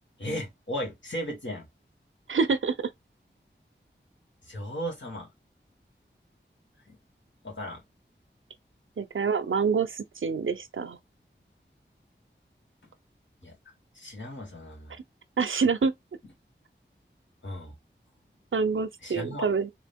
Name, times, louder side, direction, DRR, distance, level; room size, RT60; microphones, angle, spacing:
voice 1, 0.2-1.6 4.4-5.3 6.9-7.0 7.4-7.8 13.4-13.6 13.9-14.9 17.4-17.7 19.0-19.5, equal, 70° left, 2.1 m, -36 dB
voice 2, 2.3-2.9 9.0-11.0 15.4-15.9 18.5-19.7, right 5 dB, 80° right, 0.6 m, -26 dB
3.7 x 2.9 x 3.5 m
wide cardioid pair, 50°, 20 cm